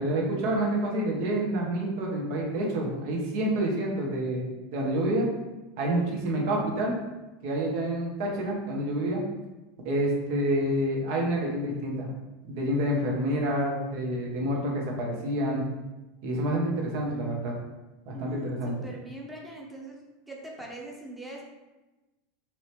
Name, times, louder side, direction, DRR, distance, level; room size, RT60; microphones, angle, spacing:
voice 1, 0.0-5.3 5.8-6.9 7.4-9.2 9.8-12.1 12.5-15.6 16.2-17.5 18.1-18.7, right 1 dB, 55° right, -1 dB, 0.9 m, -28 dB
voice 2, 18.1-20.0 20.3-21.4, right 2 dB, 5° right, -2 dB, 0.8 m, -41 dB
3.0 x 2.8 x 3.2 m, 1.1 s
figure-of-eight pair, 80°, 0 cm